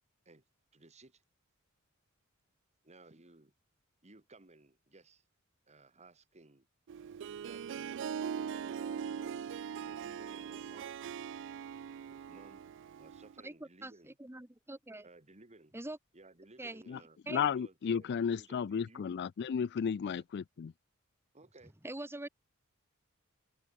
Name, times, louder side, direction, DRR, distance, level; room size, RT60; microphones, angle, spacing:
voice 1, 0.7-1.2 2.8-3.5 4.0-5.2 5.7-6.7 7.4-8.0 8.3-11.0 12.1-12.6 13.0-14.2 15.0-15.7 16.1-19.2 20.0-20.2 21.3-21.7, right 2 dB, 30° right, 2.1 m, -58 dB
Harp, 6.9-13.4, right 7 dB, 60° right, 0.3 m, -41 dB
voice 2, 13.4-15.1 15.7-16.0 16.6-17.0 17.3-17.5 21.8-22.3, right 1 dB, 10° right, 1.2 m, -44 dB
voice 3, 17.3-20.7, left 7 dB, 50° left, 0.4 m, -33 dB
open air
head